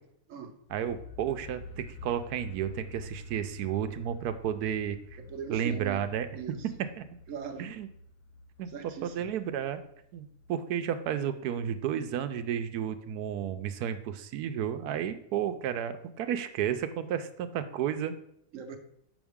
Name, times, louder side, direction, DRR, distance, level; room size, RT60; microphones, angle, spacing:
sound 1, 0.7-12.5, left 2 dB, 75° left, 1.4 m, -49 dB
voice 1, 0.7-5.2 5.5-6.6 7.0-7.1 7.6-7.9 8.6-8.7 9.0-9.8 10.1-18.2, right 9 dB, 90° right, 10 dB, 1.2 m, -32 dB
voice 2, 5.2-6.1 6.4-6.7 7.3-7.7 8.7-9.3 18.5-18.8, right 7 dB, 60° right, 5 dB, 1.2 m, -40 dB
7.2 x 5.4 x 3.6 m, 0.72 s
omnidirectional pair, 1.6 m